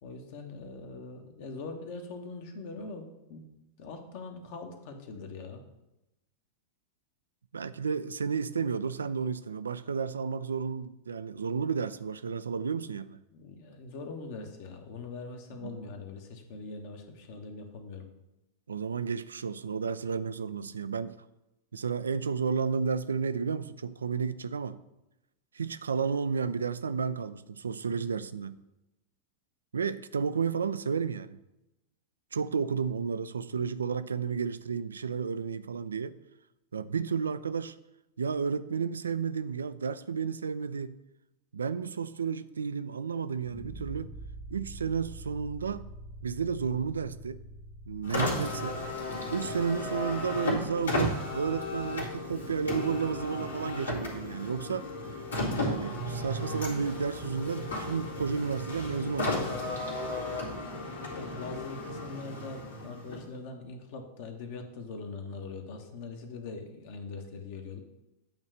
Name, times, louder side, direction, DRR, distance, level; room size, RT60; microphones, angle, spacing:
voice 1, 0.0-3.4 3.8-5.6 13.3-18.1 60.6-60.7 61.1-67.8, left 3 dB, 50° left, 4 dB, 1.2 m, -42 dB
voice 2, 7.5-13.2 15.6-15.8 18.7-21.2 21.7-24.8 25.5-28.6 29.7-31.4 32.3-36.2 36.7-37.8 38.2-41.0 41.5-44.1 44.5-45.9 46.2-47.4 47.9-48.8 49.3-54.9 55.6-59.8, right 6 dB, 70° right, 13 dB, 0.3 m, -32 dB
sound 1, 43.4-52.4, right 1 dB, 30° left, 1.4 m, -47 dB
Car, 48.0-63.4, left 2 dB, 75° left, 2.0 m, -34 dB
8.7 x 3.2 x 6.6 m, 0.93 s
figure-of-eight pair, 90°, 0 cm